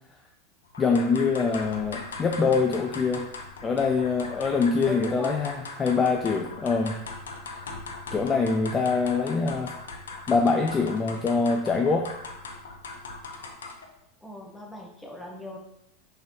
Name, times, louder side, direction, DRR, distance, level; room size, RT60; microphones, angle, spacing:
sound 1, 0.7-13.9, left 3 dB, 75° left, 0.6 m, -40 dB
voice 1, 0.8-3.2 3.6-7.0 8.1-9.7 10.3-12.1, left 4 dB, 25° left, 2 dB, 0.4 m, -24 dB
voice 2, 4.9-5.4 14.2-15.6, left 1 dB, 5° left, -1 dB, 0.9 m, -39 dB
4.0 x 3.9 x 3.0 m, 0.78 s
figure-of-eight pair, 85°, 0 cm